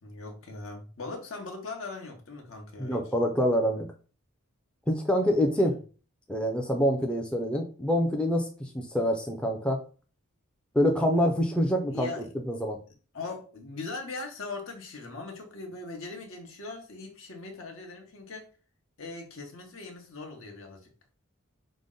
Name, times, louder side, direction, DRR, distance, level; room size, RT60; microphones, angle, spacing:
voice 1, 0.0-3.0 11.9-12.3 13.1-18.5 19.0-20.9, left 3 dB, 65° left, 2 dB, 1.0 m, -40 dB
voice 2, 2.8-3.9 4.9-5.7 6.3-9.8 10.7-12.1 12.5-12.8, equal, 5° left, 1 dB, 0.4 m, -26 dB
5.1 x 2.1 x 3.7 m, 0.37 s
head